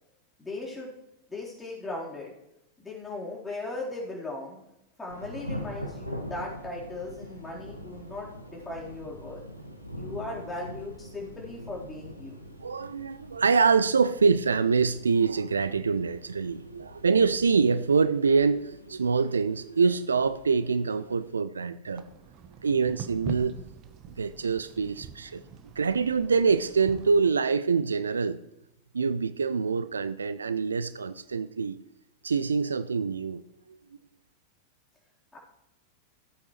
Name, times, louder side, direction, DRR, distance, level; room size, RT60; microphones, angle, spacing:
voice 1, 0.4-0.9 1.3-2.3 2.8-4.6 5.0-9.4 10.0-12.4 35.3-35.4, left 2 dB, 10° left, 4.2 m, -38 dB
Thunder / Rain, 5.1-21.3, equal, 90° right, 1.2 m, -43 dB
voice 2, 12.6-22.1 22.6-23.6 24.2-25.4 25.8-28.4 28.9-31.8 32.2-33.4, right 5 dB, 75° right, 0.4 m, -25 dB
sound 1, 21.8-27.3, right 7 dB, 35° right, 1.0 m, -43 dB
17.0 x 8.5 x 3.2 m
figure-of-eight pair, 90°, 0 cm